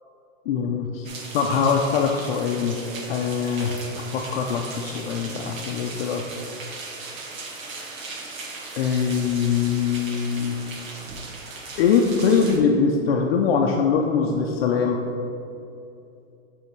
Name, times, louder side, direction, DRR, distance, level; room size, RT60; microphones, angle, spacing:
voice 1, 0.5-6.2 8.8-10.6 11.8-15.0, left 6 dB, 50° left, 1 dB, 0.6 m, -23 dB
sound 1, 1.0-12.6, right 3 dB, 85° right, 1.4 m, -38 dB
8.4 x 3.5 x 4.5 m, 2.7 s
supercardioid pair, 155°, 39 cm